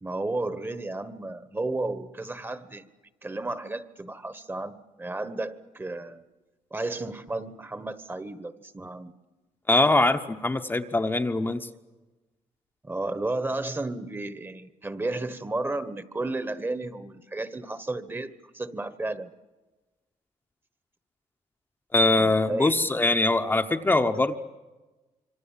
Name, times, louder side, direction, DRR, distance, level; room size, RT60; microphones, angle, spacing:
voice 1, 0.0-2.9 3.2-6.2 6.7-9.1 12.8-19.3 22.2-22.8, right 2 dB, 20° right, 12 dB, 1.3 m, -33 dB
voice 2, 9.7-11.7 21.9-24.4, left 2 dB, 15° left, 5 dB, 0.9 m, -22 dB
26.5 x 24.0 x 7.4 m, 1.2 s
cardioid pair, 95°, 12 cm